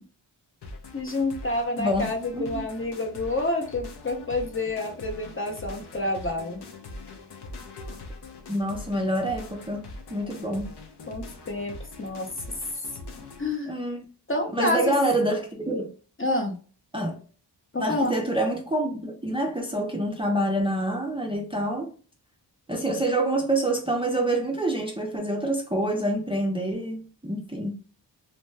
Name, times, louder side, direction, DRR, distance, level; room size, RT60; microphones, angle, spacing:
sound 1, 0.6-13.5, left 2 dB, 65° left, 0.6 m, -42 dB
voice 1, 0.9-6.6 11.1-12.3 13.4-13.7 14.3-14.9 16.2-16.6 17.7-18.2, left 2 dB, 30° left, 0.7 m, -28 dB
voice 2, 1.8-2.6 8.5-9.8 10.1-10.7 13.7-14.0 14.5-15.9 16.9-17.2 17.8-21.9 22.7-27.7, right 1 dB, 15° right, 0.5 m, -27 dB
2.7 x 2.1 x 3.2 m
wide cardioid pair, 75°, 43 cm